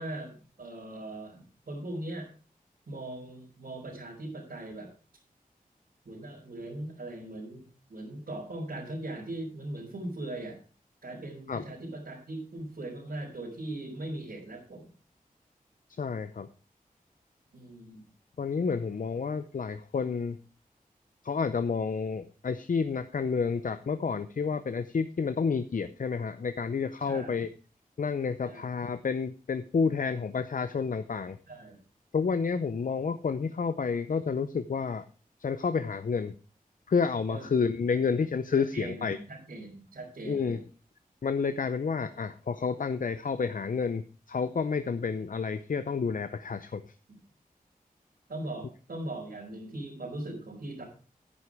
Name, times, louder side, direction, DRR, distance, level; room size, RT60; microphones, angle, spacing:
voice 1, 0.0-2.3 2.9-4.9 6.0-10.6 11.0-14.9 17.5-18.1 27.0-27.4 28.4-28.6 31.5-31.8 37.3-37.5 37.9-38.0 38.7-40.6 47.1-47.2 48.3-50.8, right 1 dB, 75° right, -6 dB, 4.4 m, -40 dB
voice 2, 16.0-16.5 18.4-20.4 21.2-27.5 28.0-31.4 32.1-35.0 35.4-36.3 36.9-39.2 40.3-40.6 41.2-46.8, left 5 dB, 65° left, 11 dB, 0.6 m, -30 dB
9.7 x 9.7 x 4.8 m, 0.37 s
wide cardioid pair, 95°, 15 cm